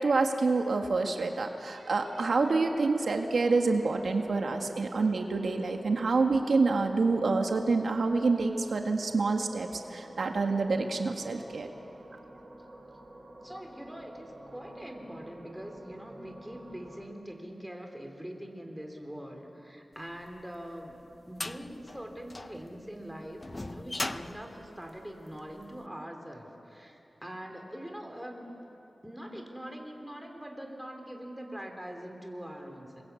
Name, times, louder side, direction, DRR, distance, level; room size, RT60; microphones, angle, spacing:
voice 1, 0.0-11.7, right 3 dB, 75° right, 3 dB, 1.7 m, -27 dB
sound 1, 2.0-17.1, right 1 dB, 30° right, 4.8 m, -49 dB
voice 2, 13.4-21.0 21.3-28.5 29.0-33.0, equal, 5° right, 3 dB, 3.7 m, -43 dB
sound 2, 20.3-25.7, left 2 dB, 30° left, 0.7 m, -40 dB
28.0 x 22.0 x 8.4 m, 2.9 s
wide cardioid pair, 95°, 0 cm